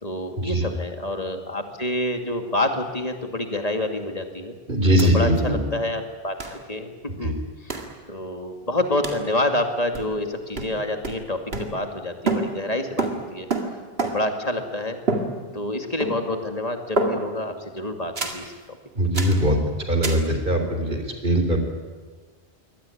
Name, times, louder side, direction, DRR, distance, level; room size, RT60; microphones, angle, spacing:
voice 1, 0.0-4.5 5.1-6.9 7.2-7.3 7.6-7.7 8.1-13.5 14.0-15.0 15.5-18.8, left 1 dB, 40° left, 5 dB, 2.4 m, -28 dB
voice 2, 4.7-5.6 7.2-7.4 18.9-19.6 19.9-21.6, equal, 55° right, 5 dB, 3.9 m, -21 dB
sound 1, 5.0-5.1 5.4-5.5 6.4-6.6 7.7-8.0 9.0-9.3 9.9-10.3 10.6-12.0 12.3-14.4 15.1-15.7 16.0-16.5 17.0-17.5 18.2-18.5 19.1-19.5 20.0-20.3, right 2 dB, 70° right, 2.5 m, -28 dB
23.5 x 18.0 x 10.0 m, 1.4 s
omnidirectional pair, 1.0 m